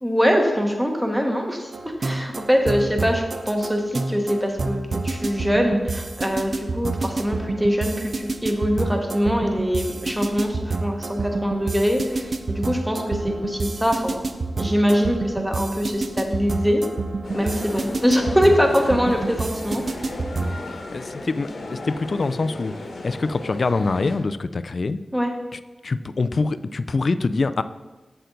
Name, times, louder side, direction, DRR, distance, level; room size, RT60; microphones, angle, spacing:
voice 1, 0.0-4.8 5.0-14.3 14.6-16.8 17.3-19.8 25.1-25.3, equal, 5° right, 3 dB, 1.2 m, -23 dB
sound 1, 1.7-20.6, right 3 dB, 55° right, 0.6 m, -28 dB
sound 2, 17.2-24.2, left 2 dB, 85° left, 1.3 m, -35 dB
voice 2, 20.7-25.0 25.5-27.6, left 3 dB, 55° left, 12 dB, 0.3 m, -25 dB
7.8 x 6.7 x 3.9 m, 1.2 s
wide cardioid pair, 70°, 0 cm